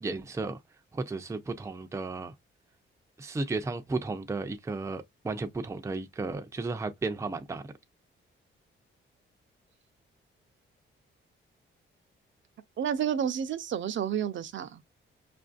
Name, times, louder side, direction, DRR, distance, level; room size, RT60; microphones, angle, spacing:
voice 1, 0.0-0.6 0.9-2.3 3.2-7.6, right 3 dB, 15° right, 0.4 m, -34 dB
voice 2, 12.8-14.8, right 9 dB, 65° right, 0.5 m, -30 dB
5.2 x 2.5 x 2.4 m
wide cardioid pair, 140°, 21 cm